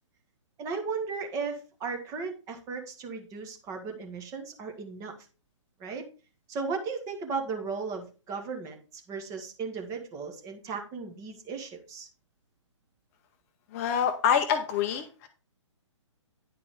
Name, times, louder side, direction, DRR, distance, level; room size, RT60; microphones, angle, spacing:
voice 1, 0.6-5.1 5.8-6.0 6.5-12.1, right 4 dB, 20° right, 3 dB, 1.6 m, -36 dB
voice 2, 13.7-15.3, left 8 dB, 25° left, 8 dB, 0.8 m, -26 dB
10.0 x 4.6 x 5.0 m, 0.34 s
figure-of-eight pair, 125°, 16 cm